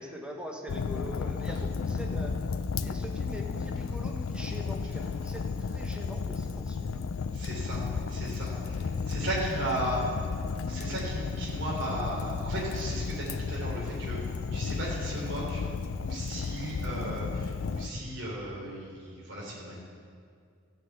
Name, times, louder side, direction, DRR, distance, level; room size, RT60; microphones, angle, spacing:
voice 1, 0.0-2.3 2.8-7.0, equal, 5° right, 1 dB, 1.2 m, -42 dB
Fire, 0.7-17.9, left 5 dB, 85° left, 0.4 m, -33 dB
voice 2, 7.3-10.4 10.7-14.2 14.5-15.6 16.0-19.8, right 1 dB, 60° right, -5 dB, 3.4 m, -35 dB
13.5 x 6.0 x 8.1 m, 2.2 s
head